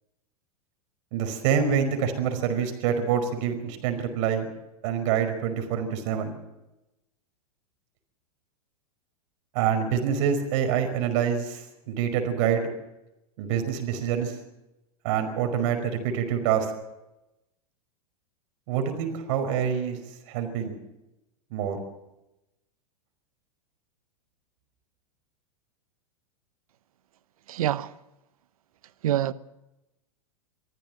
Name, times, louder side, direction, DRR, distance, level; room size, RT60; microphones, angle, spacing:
voice 1, 1.1-4.5 4.8-6.3 9.5-12.7 13.4-14.4 15.0-16.7 18.7-20.0 20.3-20.7 21.5-21.8, right 8 dB, 55° right, 5.2 m, -26 dB
voice 2, 27.5-27.9 29.0-29.3, right 12 dB, 70° right, 1.0 m, -25 dB
24.5 x 15.0 x 7.8 m
hypercardioid pair, 105°, 19 cm